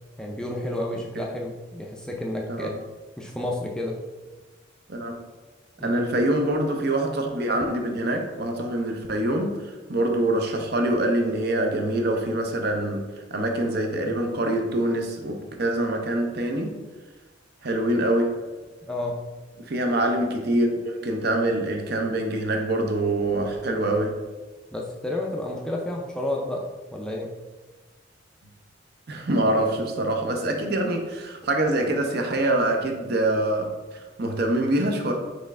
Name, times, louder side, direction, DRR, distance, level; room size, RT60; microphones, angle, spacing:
voice 1, 0.2-2.7 3.2-4.0 5.8-6.0 18.8-19.2 24.7-27.3, left 1 dB, 5° left, -1 dB, 0.4 m, -31 dB
voice 2, 5.8-13.1 13.3-16.8 17.6-18.3 19.7-24.1 29.1-35.1, right 1 dB, 55° right, 3 dB, 0.6 m, -25 dB
4.2 x 3.2 x 3.6 m, 1.2 s
head